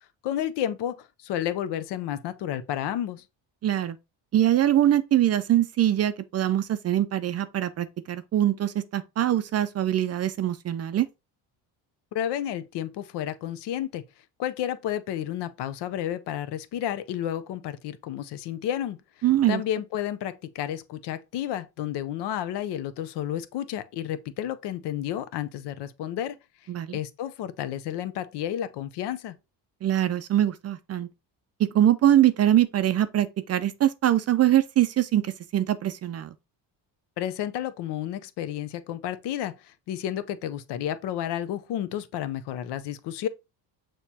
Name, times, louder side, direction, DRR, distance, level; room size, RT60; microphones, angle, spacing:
voice 1, 0.2-3.2 12.1-14.0 14.4-19.0 19.5-26.4 26.9-29.4 37.2-43.3, left 11 dB, 70° left, 0.6 m, -31 dB
voice 2, 3.6-4.0 4.3-11.1 19.2-19.6 26.7-27.0 29.8-31.1 31.7-36.3, right 12 dB, 40° right, 0.4 m, -23 dB
6.4 x 3.0 x 2.7 m
cardioid pair, 100°, 43 cm